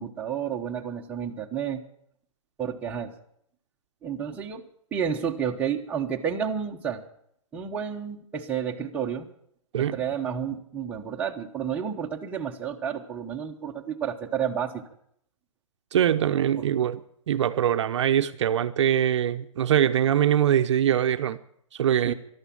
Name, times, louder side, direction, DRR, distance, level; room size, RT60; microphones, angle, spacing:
voice 1, 0.0-1.8 2.6-3.1 4.0-4.6 4.9-7.0 7.5-9.3 9.7-14.8 16.5-16.7 22.0-22.1, right 8 dB, 10° right, 0 dB, 1.1 m, -31 dB
voice 2, 15.9-17.0 17.3-21.4 21.7-22.1, right 10 dB, 55° right, 9 dB, 0.8 m, -23 dB
13.5 x 12.5 x 8.6 m, 0.69 s
hypercardioid pair, 160°, 18 cm